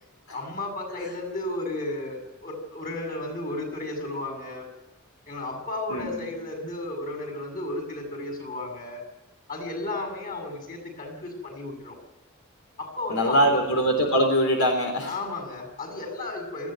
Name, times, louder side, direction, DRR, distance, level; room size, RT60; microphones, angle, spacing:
voice 1, 0.3-4.7 5.3-9.0 9.5-11.9 12.8-13.6 15.1-16.7, left 2 dB, 40° left, 3 dB, 7.4 m, -33 dB
voice 2, 13.1-15.1, equal, 80° left, 3 dB, 3.8 m, -22 dB
20.0 x 15.5 x 9.3 m, 0.98 s
head